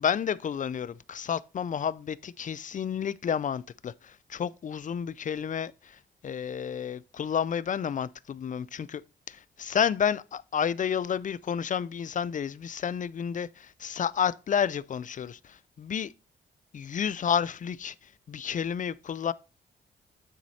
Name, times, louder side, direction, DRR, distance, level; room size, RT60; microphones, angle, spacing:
voice 1, 0.0-9.0 9.3-16.1 16.7-19.3, left 8 dB, 45° left, 0.4 m, -31 dB
9.2 x 4.1 x 4.2 m
cardioid pair, 65°, 18 cm